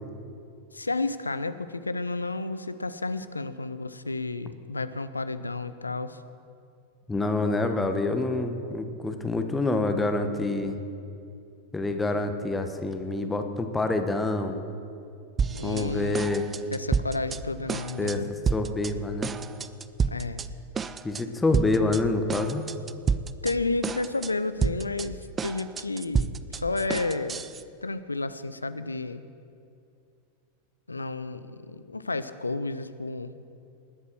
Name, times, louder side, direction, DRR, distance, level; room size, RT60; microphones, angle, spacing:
voice 1, 0.7-6.2 15.5-16.3 16.5-18.3 20.1-20.4 23.4-27.4 27.8-29.2 30.9-33.3, left 3 dB, 80° left, 13 dB, 0.6 m, -31 dB
voice 2, 7.1-10.8 11.7-14.6 15.6-16.5 18.0-18.2 18.5-19.3 21.0-22.6, left 2 dB, 10° left, 6 dB, 1.2 m, -27 dB
sound 1, 15.4-15.9 16.1-17.4 17.7-18.2 18.5-18.9 19.2-20.5 20.8-21.2 21.5-22.0 22.3-23.5 23.8-24.3 24.6-27.6, right 6 dB, 20° right, 0.5 m, -29 dB
20.0 x 8.2 x 6.2 m, 2.5 s
figure-of-eight pair, 90°, 0 cm